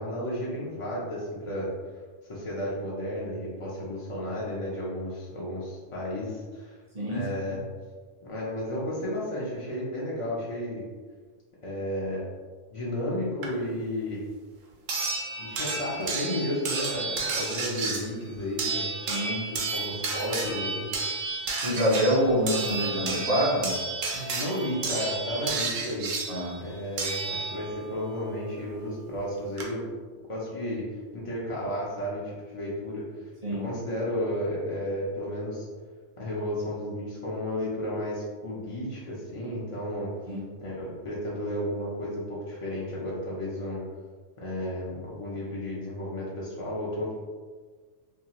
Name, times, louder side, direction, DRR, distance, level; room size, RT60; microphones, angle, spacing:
voice 1, 0.0-1.7 2.3-6.8 7.1-7.6 8.2-10.8 11.6-12.2 12.7-14.2 15.4-18.9 19.5-20.9 24.1-26.1 26.6-29.8 30.3-30.8 31.1-33.0 33.5-35.7 36.2-40.1 40.6-43.8 44.4-47.1, left 1 dB, 50° left, -6 dB, 0.3 m, -33 dB
voice 2, 6.9-7.6 19.1-19.4 21.6-23.8 26.3-26.6 33.4-33.7 40.3-40.4, equal, 40° right, -6 dB, 0.6 m, -26 dB
sound 1, 13.4-13.5 14.9-27.9 29.1-29.2 29.6-29.7, right 3 dB, 90° right, 1.0 m, -32 dB
2.7 x 2.3 x 2.9 m, 1.5 s
omnidirectional pair, 1.3 m